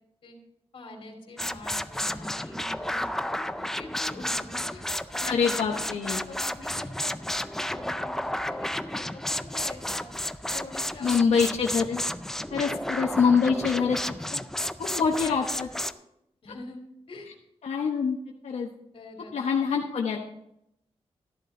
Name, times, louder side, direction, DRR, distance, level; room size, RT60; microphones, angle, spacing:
voice 1, 0.7-4.8 5.1-5.8 6.1-9.2 9.5-10.1 10.5-11.4 12.5-12.8 16.4-16.8 17.1-17.3 18.9-19.3, left 2 dB, 60° left, 3 dB, 2.9 m, -45 dB
sound 1, 1.4-15.9, left 1 dB, 5° left, 0.4 m, -32 dB
voice 2, 5.3-6.2 11.0-12.0 12.5-14.0 14.3-14.4 14.8-15.9 17.6-18.2 18.4-18.7 19.3-20.2, left 6 dB, 90° left, 0 dB, 1.1 m, -25 dB
13.5 x 11.0 x 3.8 m, 0.78 s
wide cardioid pair, 165°, 11 cm